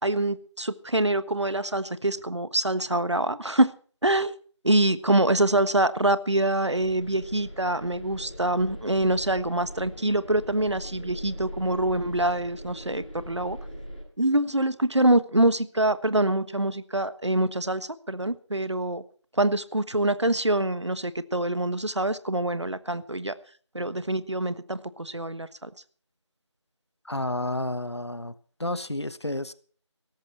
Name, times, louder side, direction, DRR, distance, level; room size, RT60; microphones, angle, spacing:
voice 1, 0.0-3.7 4.0-4.3 4.6-13.6 14.2-19.0 19.3-23.3 23.7-25.7, right 1 dB, 70° right, 14 dB, 1.3 m, -25 dB
sound 1, 6.7-14.0, equal, 15° left, 5.0 m, -41 dB
voice 2, 27.0-28.3 28.6-29.5, left 1 dB, 60° left, 15 dB, 1.3 m, -30 dB
17.0 x 14.0 x 4.4 m, 0.43 s
figure-of-eight pair, 175°, 16 cm